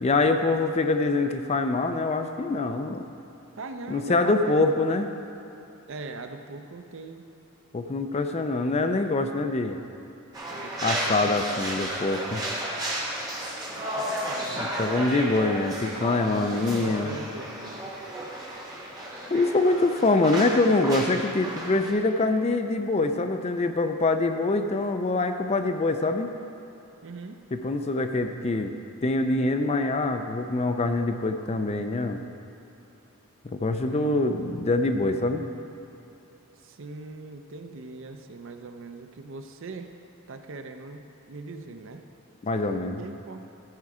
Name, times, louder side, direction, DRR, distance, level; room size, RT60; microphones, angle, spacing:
voice 1, 0.0-3.0 3.9-5.1 7.7-9.8 10.8-12.4 14.5-17.1 19.3-26.3 27.5-28.8 29.0-32.2 33.4-35.4 42.4-43.0, left 2 dB, 30° left, 7 dB, 0.4 m, -24 dB
voice 2, 3.6-5.0 5.9-7.3 8.3-9.2 10.5-11.3 11.5-11.7 13.7-14.6 16.4-17.9 27.0-27.4 33.7-34.4 36.6-39.9 40.3-42.0 42.9-43.5, right 3 dB, 60° right, 6 dB, 0.6 m, -41 dB
sound 1, 10.3-21.9, right 1 dB, 15° right, 1.3 m, -33 dB
14.0 x 4.7 x 4.8 m, 3.0 s
head